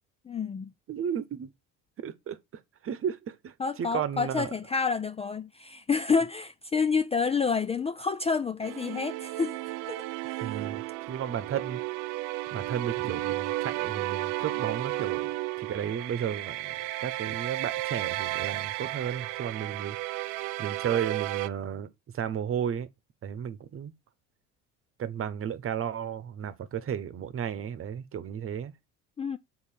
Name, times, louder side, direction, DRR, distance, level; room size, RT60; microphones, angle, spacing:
voice 1, 0.3-0.7 3.6-9.6 9.9-10.0 10.4-10.5 29.2-29.4, left 5 dB, 20° left, 0.4 m, -28 dB
voice 2, 0.9-1.5 2.0-2.4 2.8-4.5 10.4-11.8 12.5-15.3 15.6-16.7 17.0-20.2 20.6-22.9 23.2-23.9 25.0-28.7, right 8 dB, 40° right, 1.0 m, -33 dB
sound 1, 8.6-21.5, right 17 dB, 65° right, 0.6 m, -33 dB
6.9 x 4.0 x 5.8 m
supercardioid pair, 95°, 35 cm